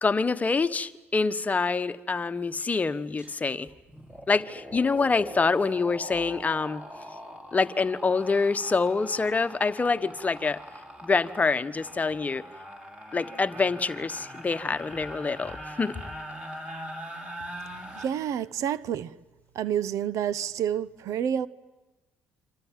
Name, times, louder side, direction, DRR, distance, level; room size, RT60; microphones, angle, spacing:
voice 1, 0.0-3.7 4.3-6.8 7.5-10.6 11.0-12.4 13.1-16.0, left 4 dB, 25° left, 1.3 m, -26 dB
sound 1, 3.2-3.4 3.7-18.1, equal, 20° right, 6.7 m, -42 dB
voice 2, 17.9-19.1 19.5-21.5, right 9 dB, 65° right, 1.0 m, -29 dB
29.0 x 25.5 x 7.5 m
supercardioid pair, 70°, 6 cm